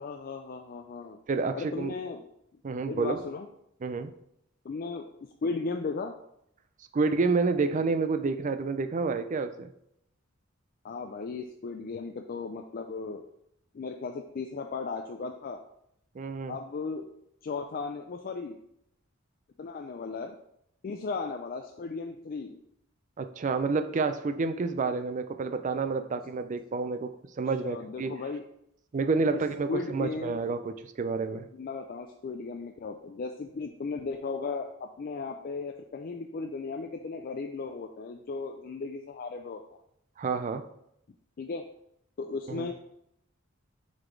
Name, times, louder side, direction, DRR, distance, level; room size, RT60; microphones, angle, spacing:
voice 1, 0.0-1.2 1.5-2.2 2.5-2.6 2.9-3.5 4.6-5.1 5.4-6.1 10.8-13.2 13.7-15.6 16.5-17.0 17.4-18.6 19.6-20.3 20.8-22.6 26.1-26.2 27.6-28.4 29.3-29.4 29.7-30.4 31.5-39.6 41.4-41.7 42.2-42.7, left 4 dB, 45° left, 4 dB, 0.4 m, -36 dB
voice 2, 1.3-1.9 2.6-3.2 3.8-4.1 6.9-9.7 16.1-16.6 23.2-28.1 28.9-31.5 40.2-40.6 42.5-42.7, right 4 dB, 40° right, 9 dB, 0.4 m, -29 dB
7.6 x 4.2 x 3.2 m, 0.76 s
head